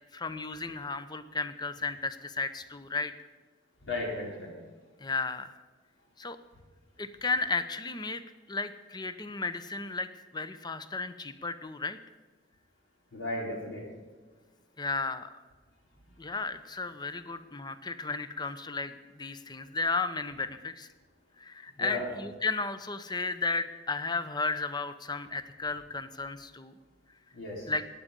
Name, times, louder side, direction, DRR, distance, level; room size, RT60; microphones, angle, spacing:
voice 1, 0.1-3.1 5.0-5.6 6.2-6.4 7.0-8.2 8.5-12.0 14.8-15.3 16.2-20.9 21.4-26.7 27.7-27.8, left 3 dB, 20° left, 12 dB, 0.7 m, -34 dB
voice 2, 3.8-4.5 13.1-13.8 21.8-22.1 27.3-27.7, left 2 dB, 75° left, -2 dB, 4.4 m, -35 dB
14.5 x 10.0 x 5.3 m, 1.4 s
head